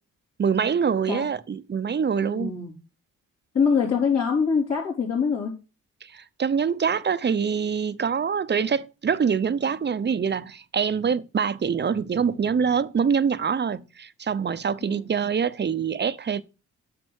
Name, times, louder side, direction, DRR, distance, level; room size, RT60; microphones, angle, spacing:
voice 1, 0.4-2.6 6.0-16.4, right 6 dB, 35° right, 0.7 m, -25 dB
voice 2, 2.2-2.7 3.5-5.5 14.9-15.1, left 6 dB, 55° left, 3.8 m, -24 dB
8.0 x 6.0 x 6.4 m
supercardioid pair, 65°, 31 cm